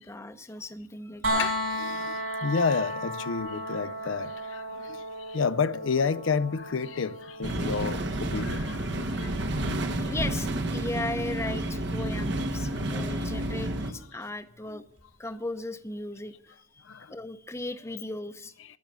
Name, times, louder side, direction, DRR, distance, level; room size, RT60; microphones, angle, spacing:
voice 1, 0.0-1.5 9.9-14.8 15.2-18.5, left 2 dB, 15° left, 0.7 m, -37 dB
sound 1, 1.2-13.0 15.0-15.1, equal, 85° right, 4.6 m, -36 dB
voice 2, 1.4-9.5 12.5-12.8 16.8-17.1, left 5 dB, 75° left, 0.5 m, -30 dB
sound 2, 7.4-13.9, right 1 dB, 55° right, 1.2 m, -30 dB
11.5 x 11.0 x 7.5 m
head